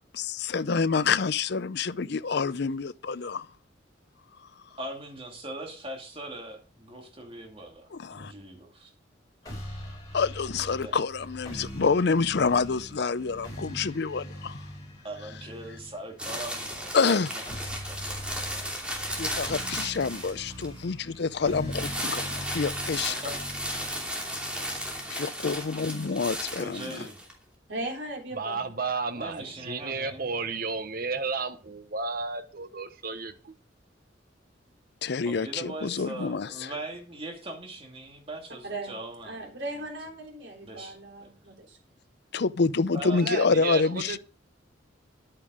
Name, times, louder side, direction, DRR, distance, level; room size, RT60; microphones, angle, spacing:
voice 1, 0.1-3.5 7.9-8.3 10.1-14.6 16.9-17.3 19.1-23.1 25.1-27.1 35.0-36.7 42.3-44.2, left 4 dB, 60° left, 0.5 m, -27 dB
voice 2, 4.8-8.9 10.7-10.9 15.0-17.4 17.9-18.7 23.1-23.4 26.5-27.2 29.1-30.3 35.2-39.5 40.6-41.3 42.9-43.2, right 1 dB, 30° right, 2.5 m, -41 dB
sound 1, 9.4-25.4, equal, 20° left, 5.1 m, -42 dB
sound 2, 16.2-20.8 21.7-27.3, equal, 5° right, 2.8 m, -34 dB
voice 3, 27.7-28.7 29.2-29.7 38.6-39.0 39.2-41.8, right 2 dB, 70° right, 3.8 m, -38 dB
voice 4, 28.3-33.5 43.2-44.2, right 4 dB, 50° right, 1.1 m, -32 dB
11.0 x 8.9 x 4.9 m
head